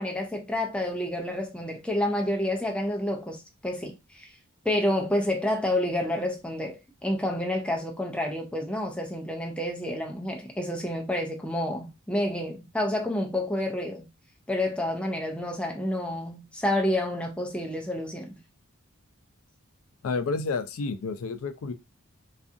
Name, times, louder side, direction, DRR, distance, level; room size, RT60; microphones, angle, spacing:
voice 1, 0.0-4.3 4.6-14.1 14.5-18.4, left 1 dB, 5° left, 0.4 m, -29 dB
voice 2, 20.0-21.7, left 4 dB, 75° left, 0.4 m, -30 dB
2.6 x 2.3 x 2.5 m
head